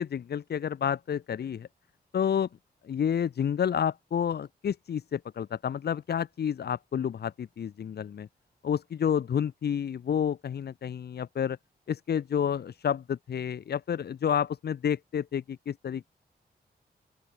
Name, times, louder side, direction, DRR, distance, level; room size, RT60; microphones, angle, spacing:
voice 1, 0.0-1.7 2.1-2.5 2.8-8.3 8.6-11.6 11.9-16.1, left 8 dB, 85° left, 5.8 m, -30 dB
open air
wide cardioid pair, 170°, 16 cm